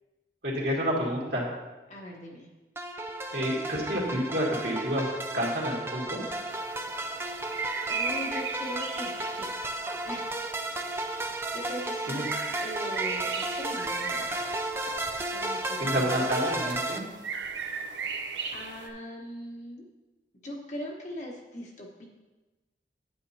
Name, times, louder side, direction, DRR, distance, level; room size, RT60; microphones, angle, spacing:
voice 1, 0.4-1.5 3.3-6.2 12.1-12.2 15.8-17.0, equal, 60° right, -4 dB, 2.3 m, -29 dB
voice 2, 1.9-2.5 7.9-9.5 10.1-10.3 11.5-12.3 12.6-14.3 15.3-16.6 16.9-17.0 18.5-19.8 20.4-22.1, equal, 40° left, -1 dB, 1.2 m, -40 dB
sound 1, 2.8-17.0, right 1 dB, 15° right, 0.4 m, -33 dB
sound 2, 6.5-18.9, right 5 dB, 85° right, 0.7 m, -38 dB
9.4 x 8.8 x 2.8 m, 1.1 s
head